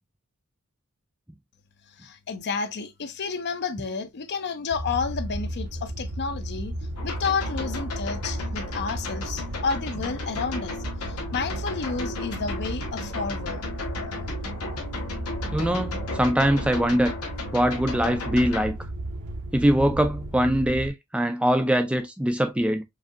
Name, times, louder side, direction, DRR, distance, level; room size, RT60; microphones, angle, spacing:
voice 1, 2.0-6.7 7.0-10.8 11.0-13.6, left 5 dB, 50° left, 0.6 m, -31 dB
sound 1, 4.7-20.9, right 1 dB, 75° right, 0.9 m, -34 dB
sound 2, 7.0-18.6, left 3 dB, 80° left, 1.5 m, -35 dB
voice 2, 15.5-17.1 17.5-18.8 19.5-22.8, equal, 5° right, 0.4 m, -22 dB
4.9 x 2.7 x 2.4 m
head